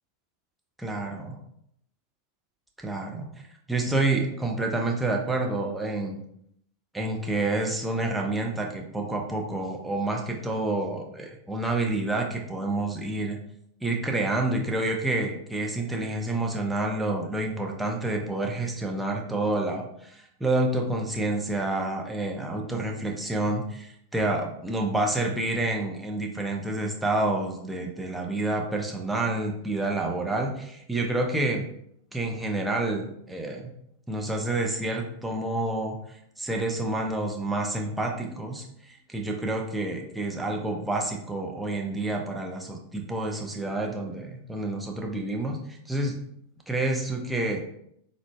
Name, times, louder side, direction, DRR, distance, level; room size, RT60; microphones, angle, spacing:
voice 1, 0.8-1.3 2.8-3.3 3.7-6.2 6.9-13.4 13.8-31.7 32.1-33.7 34.1-46.2 46.7-47.6, right 2 dB, 5° right, 0 dB, 0.5 m, -28 dB
3.7 x 2.2 x 2.2 m, 0.71 s
figure-of-eight pair, 90°, 0 cm